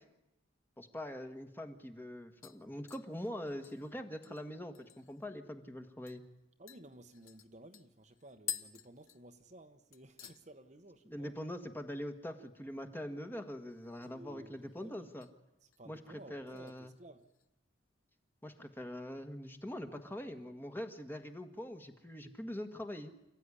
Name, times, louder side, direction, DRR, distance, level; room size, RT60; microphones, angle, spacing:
voice 1, 0.8-6.2 11.1-15.3 15.8-16.9 18.4-23.1, left 1 dB, 10° left, 6 dB, 1.5 m, -43 dB
sound 1, 1.8-2.1 2.4-5.3 5.6-5.7 6.1-6.2 6.7-9.7 9.9-10.4 10.8-11.2 11.4-11.5 13.6-14.3 14.6-15.3 15.7-16.0 16.6-17.5 17.8-17.9, left 11 dB, 85° left, 1.2 m, -49 dB
voice 2, 6.6-11.3 14.0-15.1 15.8-17.3, right 1 dB, 35° right, 6 dB, 1.1 m, -55 dB
28.0 x 14.5 x 9.9 m, 0.93 s
head